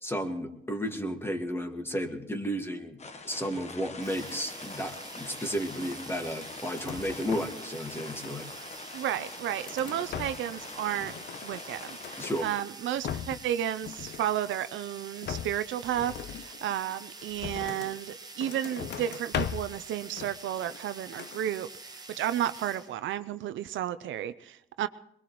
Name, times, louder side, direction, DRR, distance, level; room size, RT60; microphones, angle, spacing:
voice 1, 0.0-3.0 3.2-8.5 12.2-12.5, equal, 10° left, 5 dB, 1.9 m, -33 dB
sound 1, 3.0-12.5, left 3 dB, 35° left, 1.2 m, -44 dB
sound 2, 4.0-22.9, right 3 dB, 20° right, 1.6 m, -47 dB
sound 3, 6.7-7.6 7.9-8.7 9.2-10.6 10.9-12.4 12.8-13.5 13.8-14.8 15.2-18.0 18.4-19.8 20.1-20.9 21.1-21.4, left 9 dB, 60° left, 0.6 m, -39 dB
voice 2, 8.9-11.1 11.4-24.9, right 11 dB, 75° right, 12 dB, 0.6 m, -32 dB
22.0 x 21.5 x 3.1 m, 0.81 s
cardioid pair, 90°, 20 cm